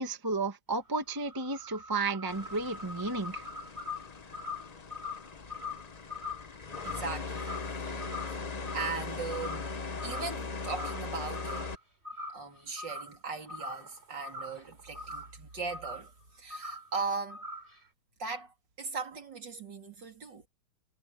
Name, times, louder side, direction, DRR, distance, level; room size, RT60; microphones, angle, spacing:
voice 1, 0.0-3.4, right 3 dB, 10° right, 1.2 m, -33 dB
sound 1, 0.7-8.4 8.7-9.1 9.3-10.4 10.6-11.0 11.3-11.8 12.1-13.2 13.5-15.4 15.7-16.1 16.5-16.9 17.3-17.8, left 3 dB, 30° right, 4.2 m, -42 dB
sound 2, 2.3-11.7, left 4 dB, 70° left, 0.3 m, -40 dB
voice 2, 6.9-7.5 7.8-8.1 8.7-9.7 10.0-11.6 12.3-16.1 16.4-17.4 18.2-20.4, right 4 dB, 55° right, 3.7 m, -38 dB
omnidirectional pair, 2.3 m